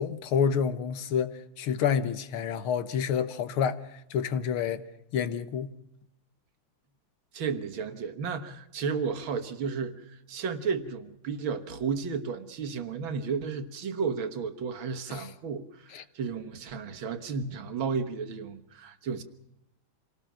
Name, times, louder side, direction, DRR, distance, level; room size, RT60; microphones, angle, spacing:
voice 1, 0.0-3.8 4.1-4.8 5.1-5.7 15.1-15.3 15.9-16.0, left 7 dB, 85° left, 2.0 m, -28 dB
voice 2, 7.3-19.2, right 5 dB, 70° right, 2.2 m, -33 dB
27.0 x 18.5 x 6.1 m
omnidirectional pair, 2.3 m